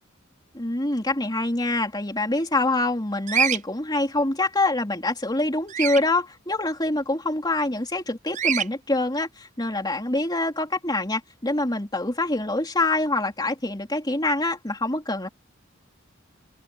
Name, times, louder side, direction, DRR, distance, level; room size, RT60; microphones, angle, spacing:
voice 1, 0.5-15.3, left 2 dB, 20° left, 3.3 m, -25 dB
Bird vocalization bird call bird song, 3.3-3.6 5.7-6.0 8.3-8.7, right 8 dB, 40° right, 0.5 m, -24 dB
head